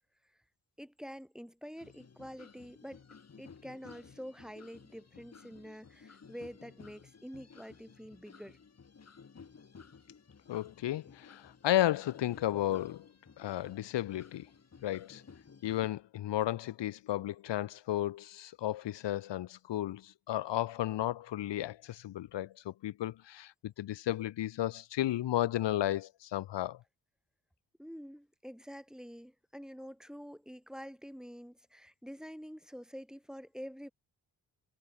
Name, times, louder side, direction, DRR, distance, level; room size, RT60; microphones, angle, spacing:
voice 1, 0.8-3.0 3.4-8.6 27.8-33.9, equal, ahead, 1.6 m, -47 dB
sound 1, 1.8-15.9, left 5 dB, 35° left, 1.9 m, -56 dB
voice 2, 10.5-13.1 13.4-14.5 14.8-15.2 15.6-26.8, left 13 dB, 85° left, 0.9 m, -33 dB
cardioid pair, 80°, 42 cm